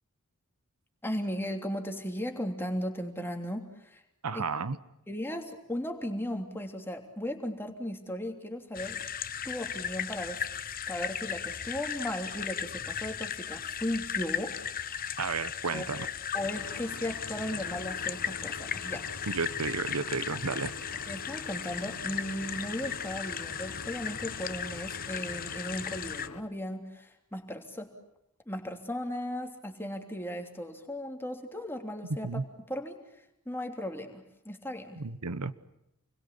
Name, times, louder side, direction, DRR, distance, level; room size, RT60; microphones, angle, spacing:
voice 1, 1.0-4.0 4.3-4.4 5.1-9.0 9.4-10.4 10.9-15.1 15.7-16.1 16.3-19.3 19.9-20.0 21.1-27.9 28.5-33.0 33.4-35.0, equal, 10° left, 3 dB, 3.1 m, -36 dB
voice 2, 4.2-4.8 15.2-16.1 19.3-20.7 32.2-32.4 35.0-35.5, right 4 dB, 85° right, 13 dB, 1.1 m, -32 dB
sound 1, 8.7-26.3, left 8 dB, 40° left, 0.9 m, -36 dB
sound 2, 16.4-26.4, left 2 dB, 75° left, 1.5 m, -46 dB
29.0 x 22.5 x 8.5 m, 0.83 s
head